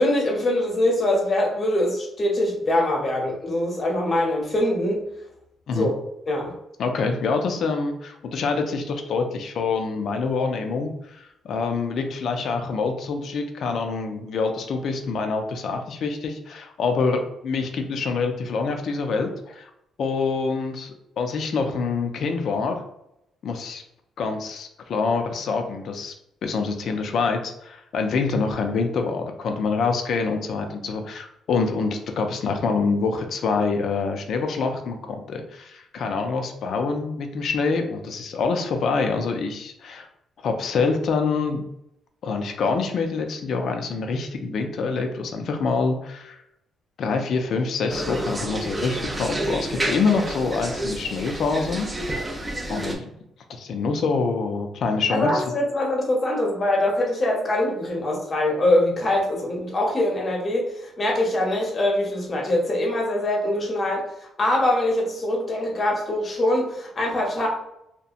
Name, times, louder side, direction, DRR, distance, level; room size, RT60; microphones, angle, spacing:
voice 1, 0.0-5.1 5.7-5.9 6.3-6.5 55.1-64.1 64.4-67.5, left 1 dB, 35° left, -1 dB, 0.8 m, -23 dB
voice 2, 6.8-19.7 20.0-22.8 23.4-23.8 24.2-26.1 26.4-40.1 40.4-41.6 42.2-46.4 47.0-51.9 52.2-52.3 52.7-53.1 53.5-55.4, left 4 dB, 65° left, 5 dB, 0.4 m, -26 dB
sound 1, 47.9-53.0, right 1 dB, 20° right, 0.5 m, -29 dB
2.8 x 2.1 x 2.4 m, 0.81 s
cardioid pair, 90°, 0 cm